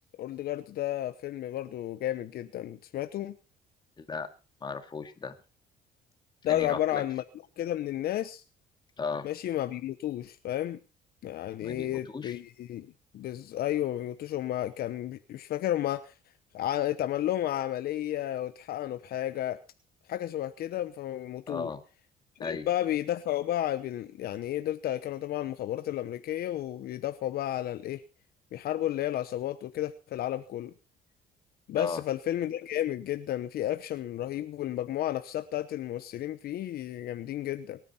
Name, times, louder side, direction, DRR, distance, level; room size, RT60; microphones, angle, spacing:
voice 1, 0.2-3.4 6.4-7.2 7.6-8.4 9.2-10.8 11.2-12.9 13.1-16.1 16.5-19.6 20.1-21.7 22.4-28.0 28.5-30.7 31.7-37.8, left 12 dB, 65° left, 11 dB, 0.9 m, -32 dB
voice 2, 4.0-4.3 4.6-5.4 6.5-7.0 9.0-9.3 11.6-12.3 21.5-21.8 22.4-22.7 31.8-32.0, left 5 dB, 25° left, 7 dB, 2.1 m, -35 dB
23.5 x 9.4 x 4.3 m, 0.32 s
cardioid pair, 110°, 17 cm